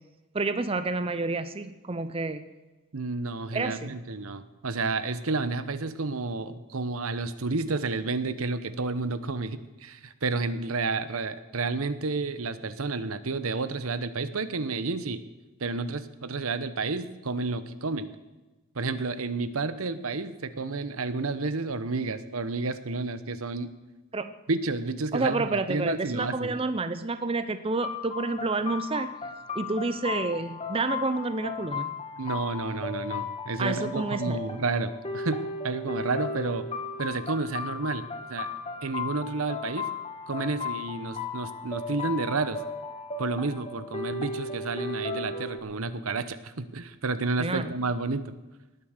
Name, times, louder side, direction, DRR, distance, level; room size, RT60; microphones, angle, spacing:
voice 1, 0.3-2.4 3.5-4.0 24.1-24.3 25.1-29.1 29.5-31.9 33.6-34.4 47.4-47.8, right 3 dB, 25° right, 11 dB, 0.6 m, -29 dB
voice 2, 2.9-15.2 15.6-18.1 18.7-23.7 24.5-26.6 32.2-35.4 35.6-36.7 37.0-38.5 38.8-39.9 40.3-42.6 43.2-48.4, right 3 dB, 75° right, 13 dB, 1.0 m, -30 dB
sound 1, 27.8-45.6, left 4 dB, 25° left, 1.6 m, -35 dB
19.0 x 9.3 x 6.6 m, 1.1 s
head